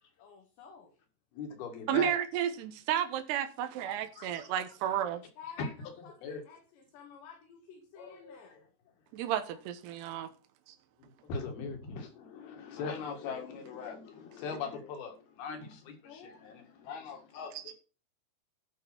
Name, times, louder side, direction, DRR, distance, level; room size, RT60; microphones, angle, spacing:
voice 1, 0.2-0.9 4.8-8.6 16.1-16.3, left 7 dB, 90° left, 4.2 m, -52 dB
voice 2, 1.3-2.1 3.8-4.5 5.6-5.7 6.0-6.4 8.0-8.6 11.2-17.7, left 5 dB, 70° left, 3.8 m, -41 dB
voice 3, 1.9-5.2 9.1-10.3 10.7-10.8, right 10 dB, 80° right, 3.0 m, -32 dB
12.0 x 5.5 x 5.9 m
omnidirectional pair, 4.8 m